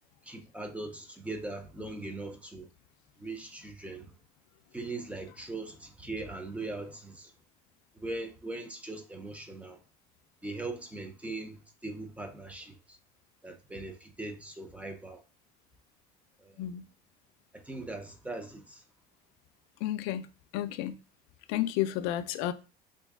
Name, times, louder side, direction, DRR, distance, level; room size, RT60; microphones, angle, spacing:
voice 1, 0.2-2.7 3.2-4.1 4.7-7.3 8.0-9.8 10.4-13.0 13.4-15.2 16.4-16.6 17.5-18.8, right 2 dB, 10° right, 0.4 m, -40 dB
voice 2, 19.8-20.3 20.5-21.0 21.5-22.5, left 13 dB, 85° left, 0.4 m, -31 dB
3.0 x 2.6 x 3.4 m
cardioid pair, 150°, 17 cm